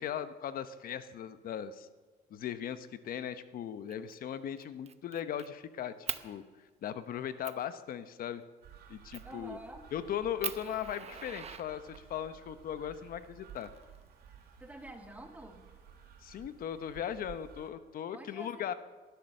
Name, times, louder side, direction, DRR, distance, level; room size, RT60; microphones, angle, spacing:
voice 1, 0.0-1.9 2.3-8.4 8.9-9.6 9.9-13.7 16.2-18.7, left 9 dB, 60° left, 12 dB, 1.0 m, -38 dB
Fire, 3.9-4.2 4.6-5.5 6.1-6.3 6.9-7.0 7.4-7.6 9.1-9.4 9.9-10.0 10.4-12.2 13.2-14.2, right 8 dB, 40° right, 0.8 m, -41 dB
sound 1, 8.6-17.7, right 8 dB, 65° right, 3.8 m, -55 dB
voice 2, 9.2-9.9 14.6-15.6 18.1-18.7, right 1 dB, 10° right, 4 dB, 2.1 m, -48 dB
18.0 x 11.5 x 6.7 m, 1.4 s
cardioid pair, 110°, 17 cm